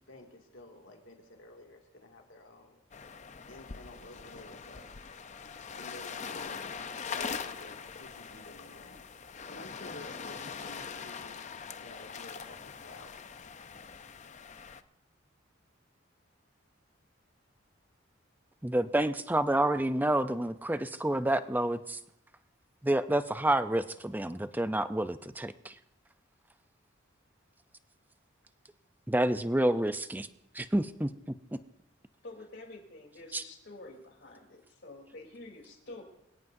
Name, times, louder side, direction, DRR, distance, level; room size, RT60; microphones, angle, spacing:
voice 1, 0.0-2.8 3.5-4.9 5.7-9.0 9.5-11.5 11.8-13.2, left 2 dB, 75° left, 1 dB, 2.4 m, -51 dB
sound 1, 2.9-14.8, left 6 dB, 35° left, 0.6 m, -42 dB
voice 2, 18.6-22.0 22.8-25.7 29.1-30.3 30.5-31.1 33.3-33.4, right 1 dB, 10° right, 11 dB, 0.5 m, -29 dB
voice 3, 32.2-36.0, left 2 dB, 60° left, 2 dB, 3.4 m, -48 dB
25.0 x 17.0 x 2.7 m, 0.83 s
head